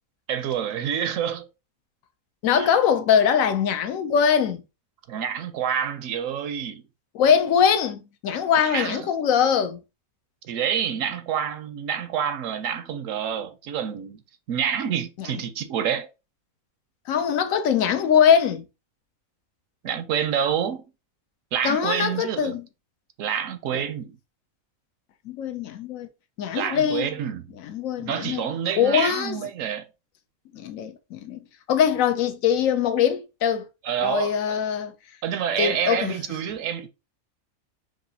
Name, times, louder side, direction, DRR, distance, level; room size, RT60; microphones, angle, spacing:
voice 1, 0.3-1.5 2.5-2.7 5.1-6.8 8.6-9.1 10.4-14.2 14.5-16.1 19.8-20.8 21.5-22.5 23.2-24.2 26.5-27.5 28.0-29.9 33.8-34.6 35.2-36.9, right 8 dB, 70° right, 0.9 m, -27 dB
voice 2, 2.4-4.6 7.1-9.8 15.2-15.3 17.1-18.6 21.6-22.7 23.7-23.8 25.3-26.1 26.4-27.1 27.6-28.4 28.8-29.4 30.5-31.4 31.7-33.7 34.0-34.9 35.6-36.2, left 8 dB, 75° left, 1.0 m, -22 dB
6.0 x 2.5 x 2.7 m
omnidirectional pair, 1.5 m